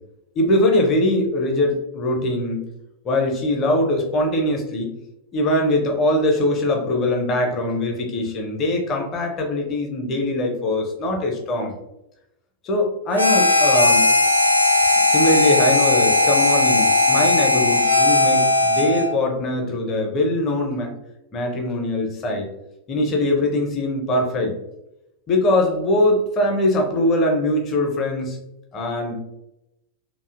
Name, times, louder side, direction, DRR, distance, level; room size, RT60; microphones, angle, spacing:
voice 1, 0.4-2.6 3.0-4.9 5.3-11.7 12.6-14.1 14.9-20.9 21.3-22.5 22.9-24.6 25.3-28.4 28.7-29.2, left 1 dB, 30° left, 2 dB, 0.5 m, -22 dB
Harmonica, 13.1-19.2, left 2 dB, 85° left, 0.3 m, -17 dB
2.6 x 2.0 x 2.4 m, 0.88 s
figure-of-eight pair, 90°, 0 cm